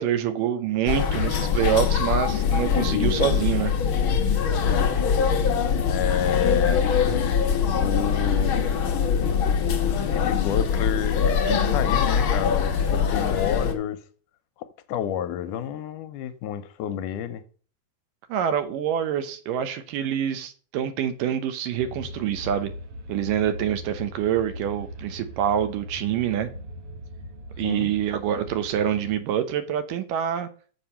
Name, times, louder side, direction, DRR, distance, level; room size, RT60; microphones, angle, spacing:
voice 1, 0.0-3.7 18.3-22.7 23.1-26.5 27.6-30.5, right 9 dB, 85° right, 2.6 m, -26 dB
sound 1, 0.9-13.7, left 7 dB, 60° left, 1.4 m, -23 dB
voice 2, 4.4-4.9 5.9-6.9 7.7-8.5 10.1-14.0 14.6-17.4 27.6-27.9, left 10 dB, 80° left, 2.1 m, -30 dB
sound 2, 21.8-29.2, equal, 60° right, 1.7 m, -40 dB
7.5 x 7.1 x 5.6 m
omnidirectional pair, 3.7 m